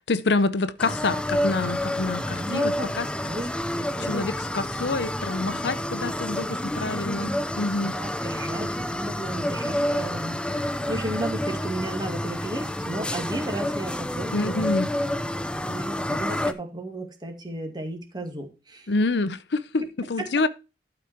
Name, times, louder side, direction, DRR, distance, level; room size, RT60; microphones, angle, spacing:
voice 1, 0.1-3.1 4.0-7.9 14.3-14.9 18.9-19.8 20.1-20.5, left 3 dB, 70° left, 0.7 m, -27 dB
sound 1, 0.8-16.5, left 1 dB, 5° left, 0.6 m, -29 dB
voice 2, 2.2-2.9 3.3-4.3 6.9-14.7 15.7-18.9 20.2-20.3, right 1 dB, 25° right, 2.0 m, -34 dB
12.0 x 4.9 x 4.4 m
head